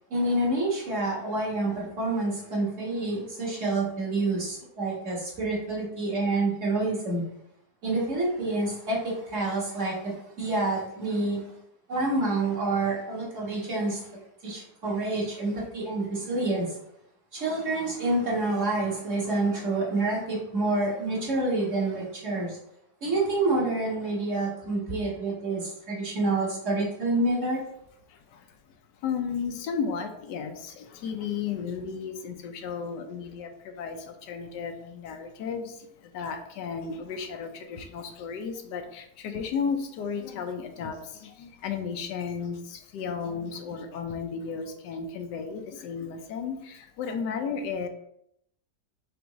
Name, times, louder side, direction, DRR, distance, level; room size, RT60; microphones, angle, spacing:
voice 1, 0.1-7.2 7.8-11.4 11.9-14.0 14.4-16.7 17.3-22.6 23.0-27.6, right 2 dB, 50° right, -4 dB, 1.6 m, -28 dB
voice 2, 28.1-47.9, left 6 dB, 90° left, 6 dB, 1.3 m, -34 dB
5.2 x 3.5 x 3.0 m, 0.74 s
omnidirectional pair, 1.8 m